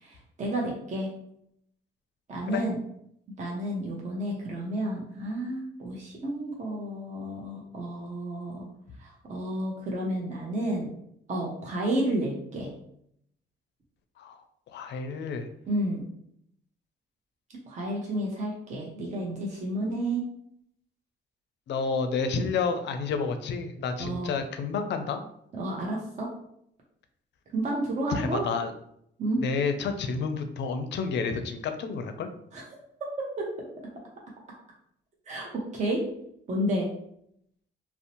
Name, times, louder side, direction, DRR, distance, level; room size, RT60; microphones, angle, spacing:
voice 1, 0.0-1.1 2.3-2.8 3.4-8.7 9.0-10.9 11.3-12.7 15.7-16.0 17.7-20.2 24.0-24.3 25.5-26.3 27.5-28.4 29.2-29.4 32.5-32.6 33.2-33.7 35.3-36.0 36.5-36.9, right 1 dB, 35° right, -2 dB, 0.6 m, -31 dB
voice 2, 14.7-15.5 21.7-25.2 28.1-28.7 29.4-32.3, left 5 dB, 60° left, 8 dB, 0.4 m, -30 dB
2.5 x 2.0 x 2.8 m, 0.72 s
cardioid pair, 90°, 20 cm